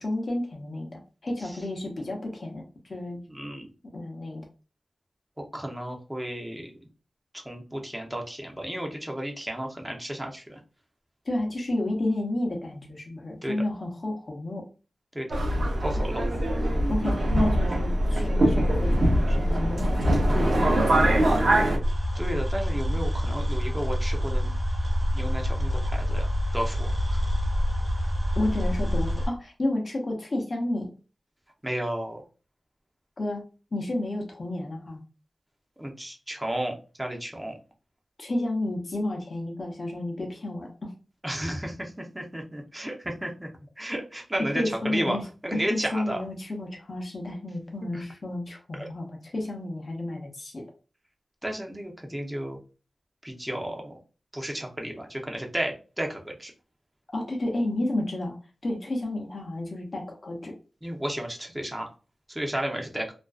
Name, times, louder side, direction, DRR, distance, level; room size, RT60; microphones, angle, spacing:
voice 1, 0.0-3.2 3.9-4.4 11.2-14.6 16.9-21.7 28.4-30.9 33.2-35.0 38.2-40.9 44.4-50.6 57.1-58.4 58.6-60.6, left 1 dB, 45° left, 0 dB, 0.7 m, -31 dB
voice 2, 3.3-3.7 5.4-6.7 7.4-10.6 13.4-13.6 15.1-15.3 15.8-16.2 22.2-24.5 25.1-26.3 26.5-27.2 31.6-32.2 35.8-37.5 41.2-43.5 43.8-45.2 45.4-46.2 47.8-48.0 48.8-48.9 51.4-52.6 53.2-54.0 54.3-56.5 60.8-61.9 62.3-63.1, right 1 dB, 15° right, 1 dB, 0.6 m, -33 dB
Subway metro underground, 15.3-21.8, right 1 dB, 70° right, 0.6 m, -23 dB
sound 1, 21.8-29.3, equal, 40° right, 1.0 m, -27 dB
2.4 x 2.2 x 2.3 m, 0.34 s
wide cardioid pair, 75°, 0 cm